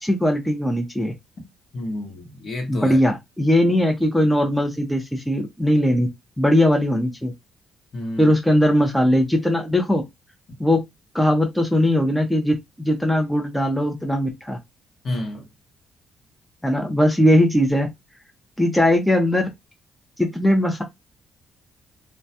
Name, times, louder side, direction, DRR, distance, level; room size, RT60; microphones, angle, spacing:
voice 1, 0.0-1.1 2.7-6.1 6.4-7.3 8.2-10.0 10.6-10.8 11.1-14.6 16.6-17.9 18.6-19.5 20.2-20.8, left 1 dB, 5° left, 0.6 m, -19 dB
voice 2, 1.7-3.0 7.9-8.3 15.0-15.4, left 1 dB, 50° left, 0.9 m, -30 dB
2.2 x 2.1 x 2.7 m
cardioid pair, 90°, 0 cm